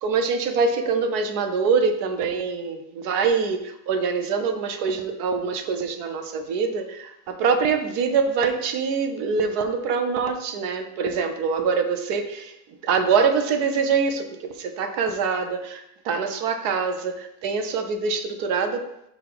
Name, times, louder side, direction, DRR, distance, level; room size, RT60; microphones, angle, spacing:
voice 1, 0.0-12.5 12.8-18.8, right 5 dB, 65° right, 6 dB, 1.1 m, -24 dB
6.8 x 3.8 x 5.9 m, 0.81 s
omnidirectional pair, 2.1 m